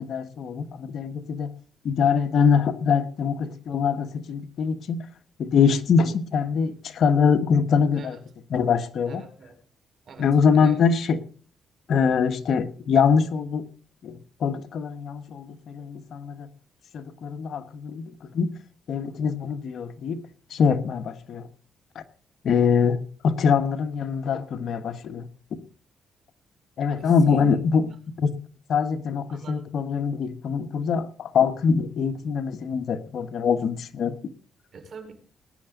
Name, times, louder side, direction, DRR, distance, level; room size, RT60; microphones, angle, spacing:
voice 1, 0.0-1.5 1.8-5.0 5.4-8.2 8.5-9.2 10.2-11.2 11.9-13.6 14.0-16.5 16.9-18.5 18.9-20.2 20.5-21.5 21.9-22.0 22.4-23.0 23.2-25.2 25.5-25.6 26.8-27.8 28.2-28.3 28.7-34.2, left 6 dB, 65° left, 1.5 m, -23 dB
voice 2, 9.1-9.5 10.0-10.3 10.5-10.8 26.9-27.6 29.3-29.7 34.7-35.1, right 5 dB, 50° right, 4.8 m, -43 dB
20.0 x 10.0 x 4.0 m
cardioid pair, 90°, 0 cm